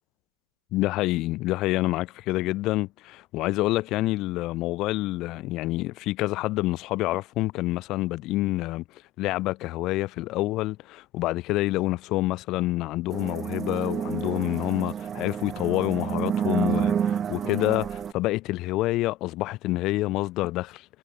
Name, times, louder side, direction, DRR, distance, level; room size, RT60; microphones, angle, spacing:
voice 1, 0.7-8.8 9.2-20.9, left 18 dB, 40° left, 0.8 m, -27 dB
sound 1, 13.1-18.1, right 8 dB, 25° right, 2.7 m, -29 dB
figure-of-eight pair, 90°, 0 cm